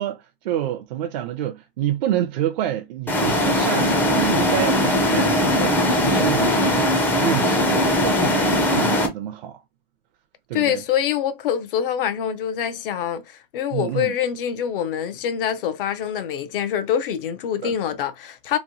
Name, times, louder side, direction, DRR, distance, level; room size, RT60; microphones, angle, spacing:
voice 1, 0.0-9.6 10.5-10.8 13.7-14.1 17.6-17.7, right 11 dB, 50° right, 0.5 m, -28 dB
sound 1, 3.1-9.1, left 1 dB, 5° left, 0.4 m, -20 dB
voice 2, 10.5-18.6, left 9 dB, 65° left, 0.6 m, -25 dB
3.0 x 2.1 x 2.6 m
hypercardioid pair, 130°, 29 cm